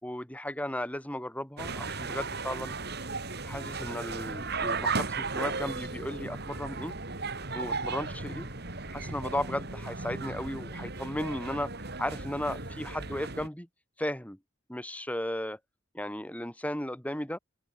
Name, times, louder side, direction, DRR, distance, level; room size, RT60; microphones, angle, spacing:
voice 1, 0.0-2.7 3.4-7.0 7.5-8.5 8.9-13.7 14.0-14.4 14.7-15.6 15.9-17.4, left 1 dB, 5° left, 2.6 m, -35 dB
sound 1, 1.6-13.5, right 4 dB, 55° right, 3.7 m, -35 dB
open air
head